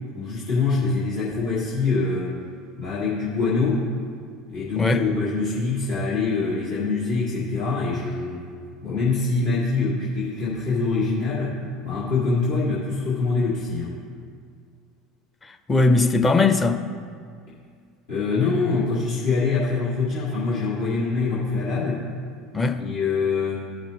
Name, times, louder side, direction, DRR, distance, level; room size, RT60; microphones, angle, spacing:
voice 1, 0.1-2.4 2.8-3.9 4.5-8.5 8.8-11.6 11.8-14.0 18.1-22.0 22.8-23.7, left 4 dB, 75° left, 1.8 m, -24 dB
voice 2, 15.4-16.8 22.5-22.8, left 3 dB, 20° left, 0.6 m, -20 dB
14.5 x 6.0 x 2.9 m
hypercardioid pair, 75°, 0 cm